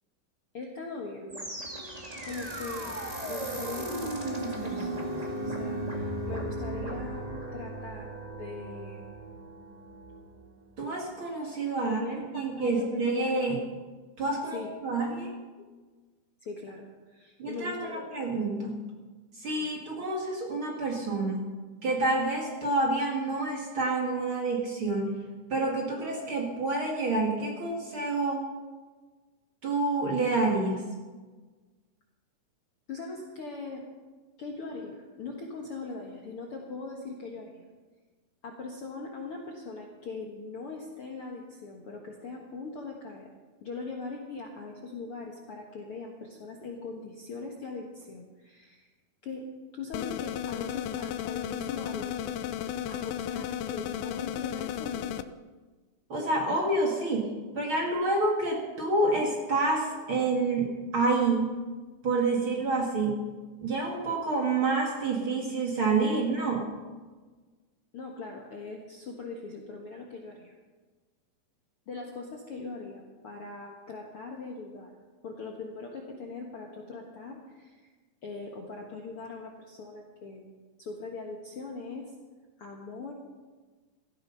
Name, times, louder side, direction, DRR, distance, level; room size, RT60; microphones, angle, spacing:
voice 1, 0.5-1.4 2.2-9.1 11.8-13.5 14.5-14.7 15.6-15.7 16.4-18.1 19.6-19.7 32.9-33.8 34.4-37.6 38.4-43.3 43.6-48.9 49.2-49.5 49.7-52.3 52.9-55.2 67.9-70.5 71.9-74.9 75.2-77.9 78.2-80.5 80.8-82.1 82.6-83.1, left 3 dB, 55° left, 0 dB, 1.7 m, -41 dB
sound 1, 1.3-10.4, right 1 dB, 25° right, 0.9 m, -36 dB
voice 2, 10.8-13.6 14.2-15.3 17.4-18.8 19.4-21.4 21.8-25.2 25.5-28.5 29.6-30.9 56.1-61.5 62.0-63.3 63.6-66.7, right 2 dB, 40° right, 0 dB, 2.3 m, -28 dB
sound 2, 49.9-55.2, left 10 dB, 90° left, 2.6 m, -34 dB
17.0 x 13.5 x 5.6 m, 1.3 s
omnidirectional pair, 4.3 m